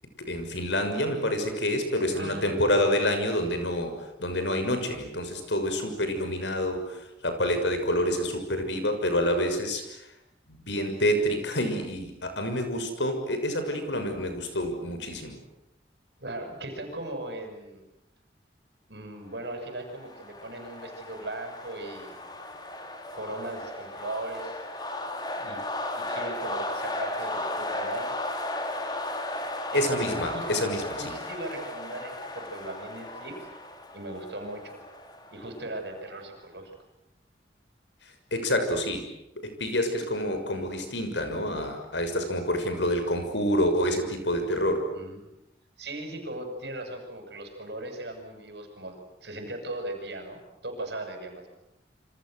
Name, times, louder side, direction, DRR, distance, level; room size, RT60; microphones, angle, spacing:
voice 1, 0.2-10.1 10.5-15.4 29.7-30.8 38.3-39.1 39.4-44.8, left 1 dB, 85° left, 7 dB, 6.5 m, -27 dB
voice 2, 2.1-2.7 16.2-17.9 18.9-22.2 23.1-24.6 25.4-25.6 26.0-28.2 29.7-30.5 31.0-33.5 33.9-34.8 35.3-36.7 44.9-45.3 45.8-51.5, right 1 dB, 70° right, 5 dB, 7.4 m, -38 dB
sound 1, 19.6-36.2, left 1 dB, 25° left, 3.4 m, -36 dB
28.5 x 26.0 x 8.0 m, 0.86 s
head